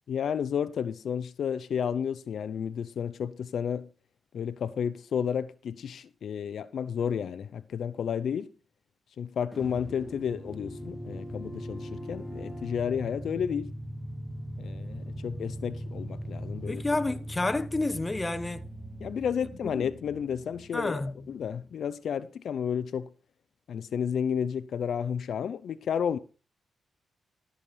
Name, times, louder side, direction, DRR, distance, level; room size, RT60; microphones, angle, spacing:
voice 1, 0.1-3.9 4.3-8.5 9.2-13.7 14.6-16.8 19.0-21.0 21.3-23.1 23.7-26.2, left 7 dB, 75° left, 0.7 m, -31 dB
sound 1, 9.5-21.7, equal, 5° right, 2.3 m, -40 dB
voice 2, 16.7-18.7 19.6-19.8 20.7-21.2, left 2 dB, 25° left, 1.1 m, -30 dB
13.5 x 7.2 x 5.1 m
cardioid pair, 60°, 0 cm